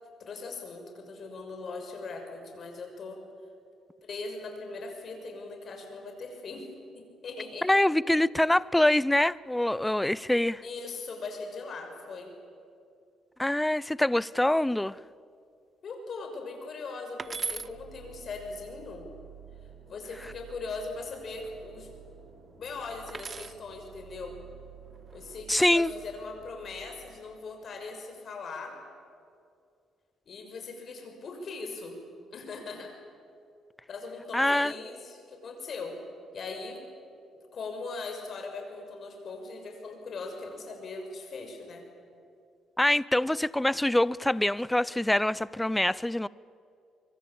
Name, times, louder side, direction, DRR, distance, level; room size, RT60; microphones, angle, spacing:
voice 1, 0.2-3.2 4.0-7.8 10.6-12.3 15.8-19.1 19.9-21.9 22.5-24.4 25.1-28.8 30.3-32.0 32.3-32.9 33.9-36.0 36.3-36.8 37.5-41.8, left 3 dB, 55° left, 6.2 m, -40 dB
voice 2, 7.6-10.6 13.4-15.0 25.5-25.9 34.3-34.7 42.8-46.3, left 1 dB, 10° left, 0.5 m, -25 dB
sound 1, 17.2-17.7 20.0-20.6 23.1-23.6 24.9-25.4, right 4 dB, 35° right, 0.8 m, -37 dB
sound 2, 17.2-28.0, right 8 dB, 70° right, 6.6 m, -52 dB
24.5 x 23.5 x 8.8 m
cardioid pair, 90°, 0 cm